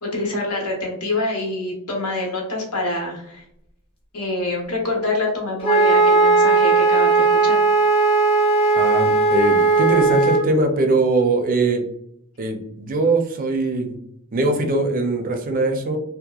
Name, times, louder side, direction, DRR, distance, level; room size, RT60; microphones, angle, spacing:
voice 1, 0.0-3.4 4.1-7.6, left 2 dB, 80° left, -1 dB, 0.8 m, -26 dB
Wind instrument woodwind instrument, 5.6-10.4, right 3 dB, 25° left, 0.5 m, -16 dB
voice 2, 8.7-11.8 12.4-14.0 14.3-16.0, right 2 dB, 40° right, 4 dB, 0.4 m, -21 dB
2.8 x 2.0 x 2.3 m, 0.75 s
head